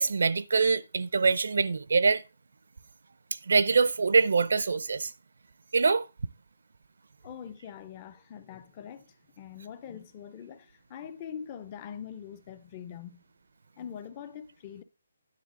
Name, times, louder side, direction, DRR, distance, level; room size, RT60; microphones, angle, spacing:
voice 1, 0.0-2.2 3.5-5.1 5.7-6.0, right 4 dB, 60° right, 0.5 m, -24 dB
voice 2, 7.2-13.2 13.8-14.8, left 8 dB, 20° left, 0.4 m, -43 dB
9.6 x 3.5 x 6.1 m
hypercardioid pair, 175°, 0 cm